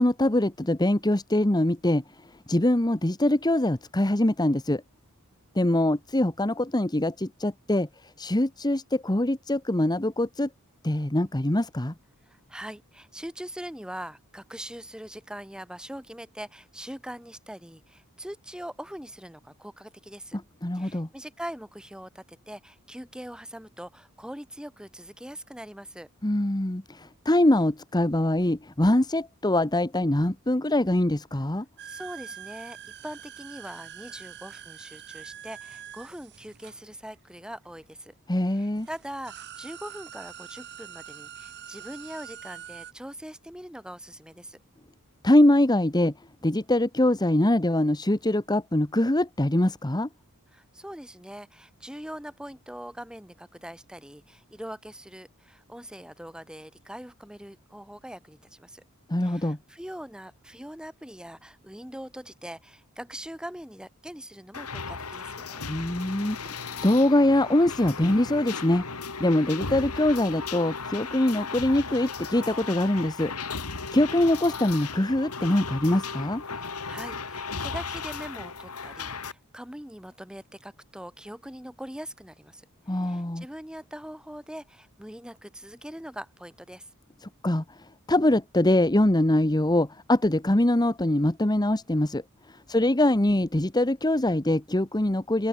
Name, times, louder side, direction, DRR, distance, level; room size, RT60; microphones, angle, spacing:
voice 1, 0.0-2.0 2.5-4.8 5.5-7.9 8.2-10.5 10.8-11.9 20.6-21.1 26.2-31.6 38.3-38.9 45.2-46.1 46.4-50.1 59.1-59.6 65.7-68.8 69.2-73.3 73.9-76.4 82.9-83.4 87.4-87.6 88.1-92.2 92.7-95.5, left 1 dB, 20° left, 1.2 m, -23 dB
voice 2, 12.3-20.4 20.7-26.1 31.8-32.8 33.0-38.1 38.5-44.6 50.5-58.8 59.2-65.6 76.5-82.6 82.9-86.9 92.7-92.9, equal, 5° right, 2.2 m, -42 dB
sound 1, 31.8-37.5 38.3-38.4 38.7-42.9, right 10 dB, 50° right, 2.1 m, -44 dB
sound 2, 64.5-79.3, left 4 dB, 85° left, 4.2 m, -36 dB
open air
head